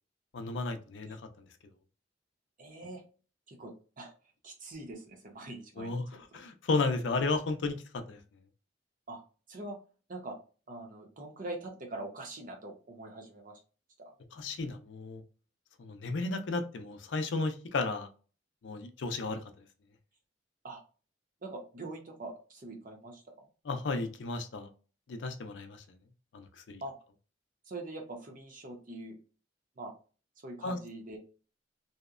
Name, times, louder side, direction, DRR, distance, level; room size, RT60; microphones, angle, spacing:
voice 1, 0.3-1.2 5.8-7.8 8.1-8.2 14.3-15.2 15.8-18.1 18.6-19.4 23.6-24.7 25.1-25.8 26.3-26.8 30.6-30.8, left 3 dB, 75° left, 7 dB, 0.4 m, -33 dB
voice 2, 2.6-3.0 3.5-4.1 4.4-6.0 9.1-9.2 9.5-9.8 10.1-10.4 10.7-13.6 14.0-14.1 20.6-20.8 21.4-23.5 26.8-26.9 27.7-29.2 29.8-29.9 30.4-31.2, right 2 dB, 50° right, 3 dB, 0.7 m, -43 dB
2.7 x 2.1 x 2.3 m, 0.36 s
head